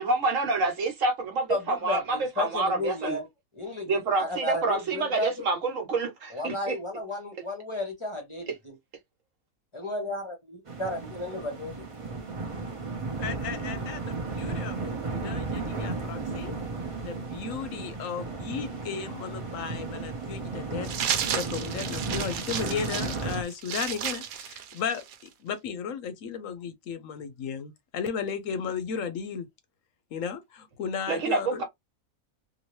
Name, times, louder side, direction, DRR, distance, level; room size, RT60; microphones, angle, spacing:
voice 1, 0.0-3.2 3.9-6.7 31.1-31.6, right 3 dB, 65° right, 1.3 m, -27 dB
voice 2, 1.5-3.3 3.5-3.9 4.1-5.4 6.3-8.7 9.7-11.9, left 2 dB, 25° left, 0.8 m, -33 dB
sound 1, 10.7-23.4, right 3 dB, 35° right, 0.6 m, -34 dB
voice 3, 13.2-16.5 17.0-20.9 21.3-29.5 30.1-31.6, left 6 dB, 70° left, 0.9 m, -35 dB
sound 2, 20.8-25.3, right 9 dB, 85° right, 1.1 m, -32 dB
2.8 x 2.6 x 3.0 m
omnidirectional pair, 1.5 m